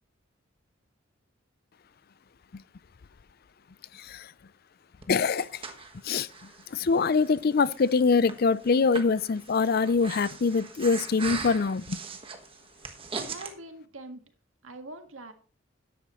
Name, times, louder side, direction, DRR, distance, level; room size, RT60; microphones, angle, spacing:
voice 1, 3.9-4.3 5.1-5.7 6.0-12.0, left 4 dB, 50° left, 0.4 m, -24 dB
Breathing, 5.0-13.5, right 4 dB, 25° right, 1.4 m, -41 dB
voice 2, 13.1-14.2 14.6-15.3, right 2 dB, 90° right, 1.8 m, -43 dB
13.0 x 10.0 x 3.1 m
head